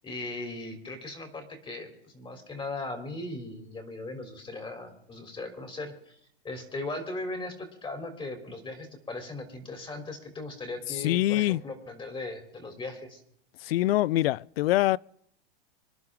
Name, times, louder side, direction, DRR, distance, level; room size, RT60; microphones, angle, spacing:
voice 1, 0.0-6.1 6.4-13.2, left 2 dB, 15° left, 3.5 m, -38 dB
voice 2, 11.0-11.6 13.6-15.0, left 16 dB, 75° left, 0.5 m, -24 dB
26.0 x 11.0 x 3.7 m
hypercardioid pair, 120°, 30 cm